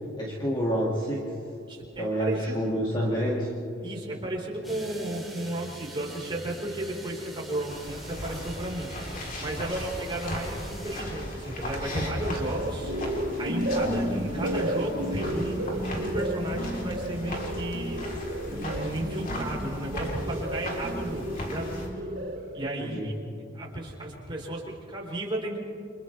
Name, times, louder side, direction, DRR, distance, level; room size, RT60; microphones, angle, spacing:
voice 1, 0.2-1.3 2.0-3.5 13.7-14.2 22.8-23.1, equal, 25° left, -5 dB, 2.3 m, -28 dB
voice 2, 1.7-2.5 3.8-12.9 13.4-15.7 15.9-18.0 18.5-21.7 22.5-23.1 23.5-25.6, right 1 dB, 25° right, -4 dB, 4.7 m, -34 dB
sound 1, 4.6-11.0, right 1 dB, ahead, 3.4 m, -44 dB
sound 2, 7.7-21.9, equal, 45° left, 3.8 m, -37 dB
sound 3, 12.1-22.7, right 1 dB, 65° right, 4.6 m, -32 dB
29.5 x 27.0 x 3.5 m, 2.5 s
head